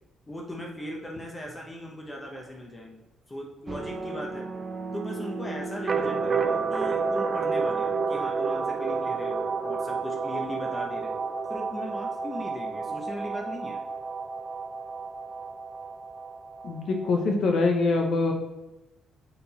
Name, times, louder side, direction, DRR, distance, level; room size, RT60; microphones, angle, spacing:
voice 1, 0.3-3.0 3.3-4.5 4.9-11.2 11.5-13.8, equal, 20° left, 0 dB, 1.1 m, -38 dB
sound 1, 3.7-17.2, right 4 dB, 40° right, 0.5 m, -30 dB
voice 2, 16.6-18.3, left 3 dB, 65° left, 2 dB, 1.2 m, -24 dB
6.9 x 3.8 x 4.2 m, 0.98 s
cardioid pair, 90°, 0 cm